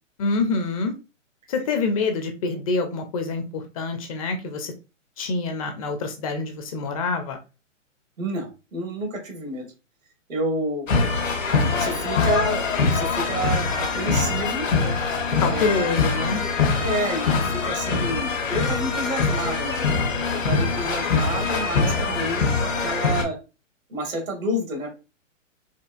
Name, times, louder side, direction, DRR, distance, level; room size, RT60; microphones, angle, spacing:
voice 1, 0.2-0.9 1.5-4.7 5.2-7.4 15.4-16.4, left 4 dB, 30° left, 5 dB, 0.4 m, -26 dB
voice 2, 8.2-9.7 10.3-10.9 11.8-14.7 15.5-15.9 16.8-23.4 23.9-24.9, right 1 dB, 85° right, 3 dB, 1.7 m, -29 dB
sound 1, 10.9-23.2, left 4 dB, 80° left, 1.1 m, -23 dB
4.4 x 2.4 x 2.3 m, 0.30 s
hypercardioid pair, 130°, 39 cm